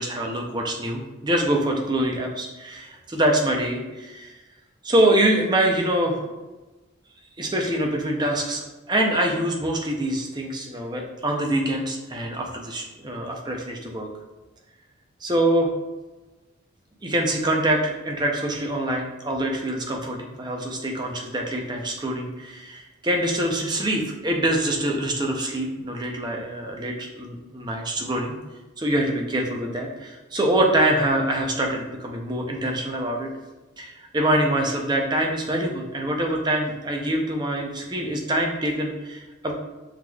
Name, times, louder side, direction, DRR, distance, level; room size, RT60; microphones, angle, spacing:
voice 1, 0.0-4.4 4.8-6.3 7.4-14.1 15.2-15.7 17.0-28.4 28.8-33.3 33.8-39.5, right 1 dB, 20° right, 1 dB, 0.6 m, -25 dB
5.9 x 3.1 x 2.3 m, 1.1 s
head